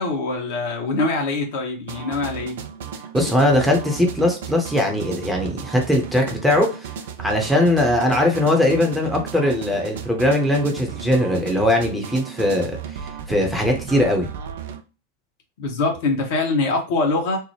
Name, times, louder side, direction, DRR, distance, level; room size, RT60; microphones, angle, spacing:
voice 1, 0.0-2.6 15.6-17.4, left 3 dB, 50° left, 2 dB, 0.9 m, -23 dB
sound 1, 1.9-14.8, right 8 dB, 55° right, 0.4 m, -35 dB
voice 2, 3.1-6.9 7.2-13.0 13.3-14.3, left 1 dB, ahead, 1 dB, 0.8 m, -20 dB
3.3 x 2.0 x 3.0 m, 0.32 s
figure-of-eight pair, 90°, 0 cm